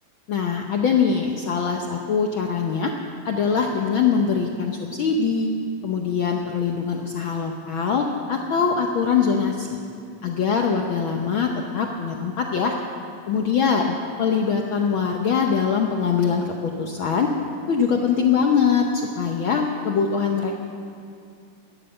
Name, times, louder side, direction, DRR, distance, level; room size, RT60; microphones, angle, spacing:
voice 1, 0.3-2.9 3.2-5.5 5.8-9.8 10.2-12.8 13.3-17.4 17.7-20.5, left 6 dB, 75° left, 2 dB, 1.1 m, -23 dB
13.0 x 11.0 x 8.9 m, 2.5 s
omnidirectional pair, 3.3 m